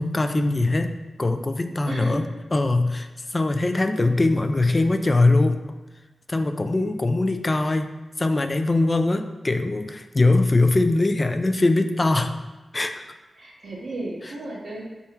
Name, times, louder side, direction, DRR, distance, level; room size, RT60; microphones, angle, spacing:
voice 1, 0.0-5.6 6.3-12.3 12.7-13.0, left 2 dB, 25° left, 7 dB, 0.4 m, -22 dB
voice 2, 1.8-2.2 13.3-14.8, right 1 dB, 65° right, -8 dB, 1.1 m, -33 dB
6.6 x 3.5 x 4.3 m, 1.1 s
wide cardioid pair, 150°, 0 cm